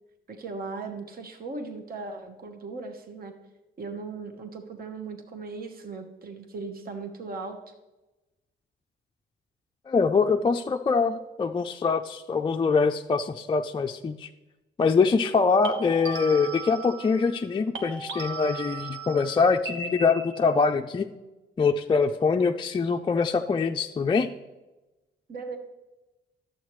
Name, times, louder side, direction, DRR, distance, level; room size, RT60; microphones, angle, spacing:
voice 1, 0.3-3.3 3.8-7.6 25.3-25.6, right 4 dB, 45° right, 5 dB, 1.2 m, -38 dB
voice 2, 9.9-14.3 14.8-21.1 21.6-24.3, left 4 dB, 25° left, 4 dB, 0.4 m, -24 dB
sound 1, 10.7-11.0 15.6-17.5 17.7-20.6, right 3 dB, 75° right, 1.4 m, -37 dB
11.5 x 8.0 x 3.1 m, 1.1 s
cardioid pair, 90°, 20 cm